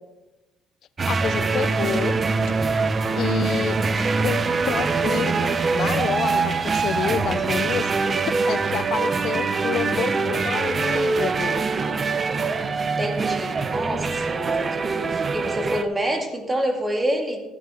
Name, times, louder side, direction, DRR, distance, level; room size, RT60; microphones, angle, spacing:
sound 1, 1.0-15.8, right 4 dB, 35° right, 0.7 m, -23 dB
voice 1, 1.1-2.1 3.2-3.8 4.2-7.9 8.2-11.7, left 10 dB, 60° left, 17 dB, 0.3 m, -29 dB
voice 2, 12.8-17.4, equal, 20° right, 2 dB, 2.3 m, -27 dB
13.5 x 9.2 x 3.8 m, 1.1 s
cardioid pair, 90°, 0 cm